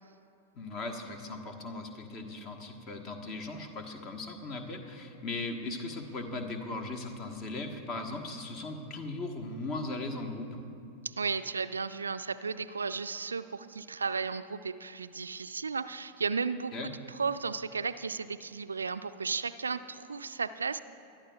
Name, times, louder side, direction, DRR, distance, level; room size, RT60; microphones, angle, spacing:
voice 1, 0.6-10.6 16.7-16.9, left 2 dB, 30° left, 5 dB, 1.2 m, -38 dB
voice 2, 11.0-16.9 17.2-20.8, right 5 dB, 75° right, 13 dB, 0.3 m, -34 dB
22.0 x 11.5 x 2.3 m, 2.7 s
figure-of-eight pair, 90°, 0 cm